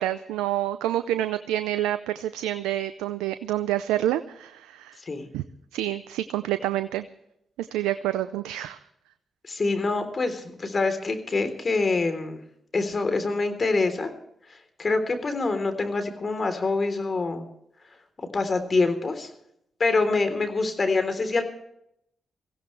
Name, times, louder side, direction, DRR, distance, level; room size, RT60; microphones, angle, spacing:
voice 1, 0.0-5.0 5.3-5.4 5.7-7.1 7.6-8.8, right 13 dB, 90° right, 12 dB, 0.5 m, -28 dB
voice 2, 9.5-12.4 12.7-14.1 14.8-17.5 18.3-19.3 19.8-21.4, left 3 dB, 45° left, 9 dB, 3.5 m, -25 dB
23.5 x 16.0 x 3.3 m, 0.76 s
supercardioid pair, 45°, 0 cm